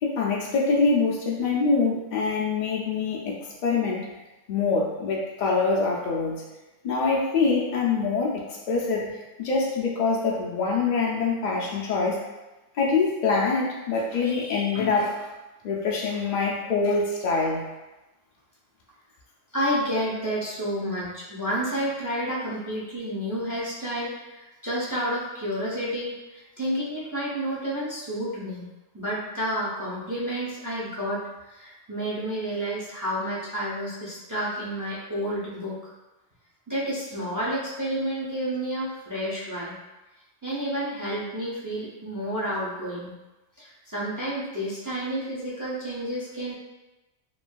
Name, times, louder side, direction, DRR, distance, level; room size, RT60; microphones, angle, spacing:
voice 1, 0.0-4.1 4.5-6.4 6.8-12.2 12.7-15.3 15.6-17.7, left 4 dB, 80° left, -3 dB, 0.4 m, -25 dB
voice 2, 19.5-28.7 28.9-31.2 31.5-35.9 36.7-39.8 40.4-43.1 43.6-46.5, equal, 30° right, -7 dB, 0.3 m, -30 dB
3.0 x 2.5 x 2.2 m, 1.1 s
omnidirectional pair, 1.3 m